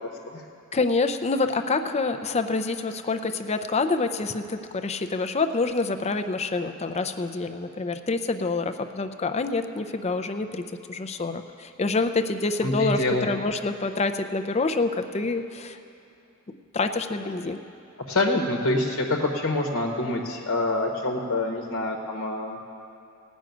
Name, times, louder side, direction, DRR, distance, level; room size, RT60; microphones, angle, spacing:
voice 1, 0.0-0.4 12.6-13.3 18.1-22.6, left 2 dB, 70° left, 2 dB, 1.1 m, -26 dB
voice 2, 0.7-15.8 16.7-17.6, left 3 dB, 30° left, 8 dB, 0.5 m, -27 dB
17.0 x 6.3 x 9.2 m, 2.7 s
head